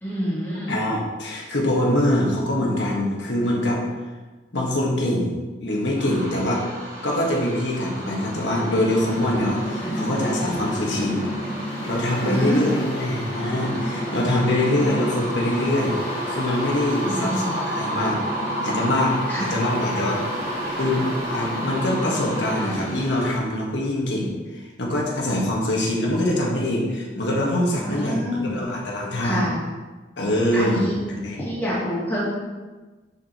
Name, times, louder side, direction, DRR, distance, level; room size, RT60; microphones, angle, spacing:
voice 1, 0.0-0.8 9.8-9.9 12.3-12.9 17.1-17.5 19.3-19.5 27.8-28.6 29.2-29.6 30.5-31.0 31.4-32.2, equal, 10° left, -8 dB, 2.3 m, -26 dB
voice 2, 0.7-3.8 4.5-6.7 7.0-11.3 11.8-16.0 16.3-18.2 18.6-20.4 20.8-29.4 30.2-30.9 31.2-31.4, left 1 dB, 85° left, -3 dB, 1.5 m, -24 dB
sound 1, 6.0-23.4, right 1 dB, 40° right, 2.1 m, -33 dB
Mechanical fan, 8.5-23.4, equal, 30° left, 1.8 m, -32 dB
9.7 x 4.7 x 3.0 m, 1.3 s
head